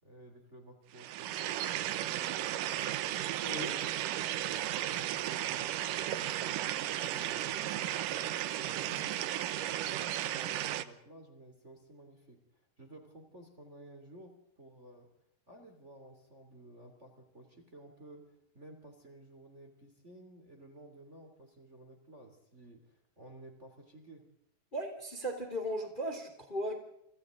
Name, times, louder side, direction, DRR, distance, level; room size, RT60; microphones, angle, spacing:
voice 1, 0.0-2.9 3.4-4.0 4.3-6.7 7.0-9.5 9.8-15.1 15.5-24.2, right 1 dB, 20° right, 4 dB, 3.2 m, -54 dB
sound 1, 0.9-10.8, right 12 dB, 75° right, 2.5 m, -34 dB
voice 2, 3.4-3.8 24.7-26.8, equal, 15° left, 4 dB, 3.0 m, -37 dB
30.0 x 25.5 x 3.9 m, 0.76 s
omnidirectional pair, 3.9 m